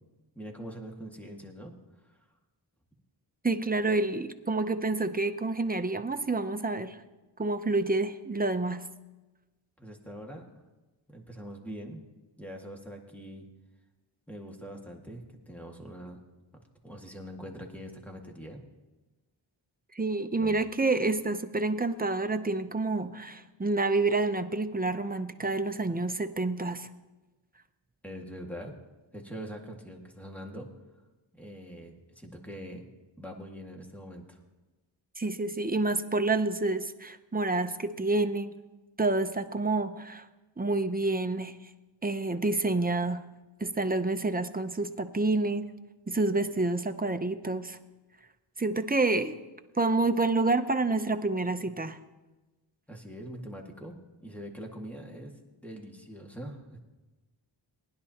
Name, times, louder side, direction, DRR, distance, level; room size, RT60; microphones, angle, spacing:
voice 1, 0.4-1.7 2.1-2.2 9.8-10.5 11.1-12.0 12.4-13.5 14.3-16.2 16.8-18.6 20.4-20.6 28.0-28.7 29.1-30.7 31.3-32.8 33.2-34.4 52.9-55.3 55.6-56.8, equal, 5° left, 1 dB, 1.9 m, -43 dB
voice 2, 3.4-7.0 7.4-8.8 19.9-26.9 35.2-38.5 39.0-40.3 40.6-41.5 42.0-43.2 43.6-45.7 46.1-47.8 48.6-49.4 49.8-52.0, right 2 dB, 20° right, 8 dB, 0.6 m, -28 dB
19.5 x 10.5 x 2.9 m, 1.1 s
wide cardioid pair, 55°, 49 cm